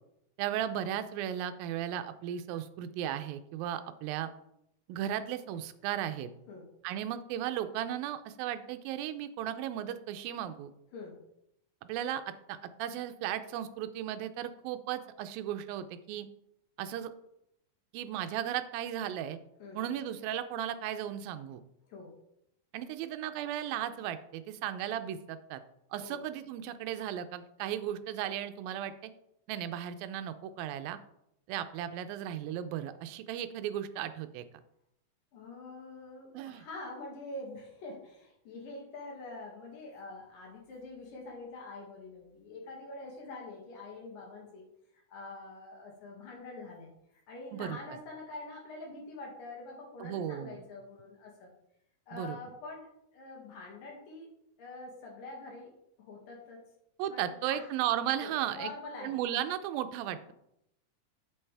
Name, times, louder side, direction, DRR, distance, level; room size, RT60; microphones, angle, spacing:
voice 1, 0.4-4.3 4.9-6.3 6.8-10.7 11.8-12.2 12.5-16.3 16.8-17.1 17.9-19.4 19.8-21.6 22.7-25.6 25.9-28.9 29.5-31.0 31.5-34.4 36.3-36.6 47.5-48.0 50.0-50.6 52.1-52.4 57.0-58.7 59.0-60.3, right 11 dB, 80° right, 11 dB, 2.3 m, -35 dB
voice 2, 35.3-44.7 44.9-46.9 47.3-51.5 52.1-54.3 54.6-55.7 56.0-56.6 57.1-57.7 58.2-59.2, left 2 dB, 70° left, -1 dB, 3.5 m, -45 dB
8.7 x 7.0 x 3.4 m, 0.79 s
omnidirectional pair, 4.3 m